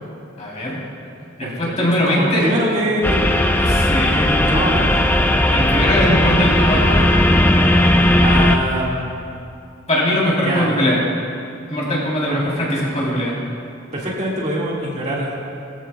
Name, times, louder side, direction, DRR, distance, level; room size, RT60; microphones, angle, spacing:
voice 1, 0.4-0.8 1.4-2.5 3.6-4.1 5.5-7.0 9.9-11.0 11.7-13.3, equal, 35° left, -5 dB, 3.2 m, -20 dB
voice 2, 1.4-3.4 4.1-5.3 8.2-9.1 10.4-10.8 12.3-12.4 13.9-15.3, equal, 35° right, -5 dB, 1.8 m, -24 dB
sound 1, 3.0-8.6, left 1 dB, 10° left, 0.5 m, -16 dB
19.5 x 14.0 x 2.2 m, 2.5 s
head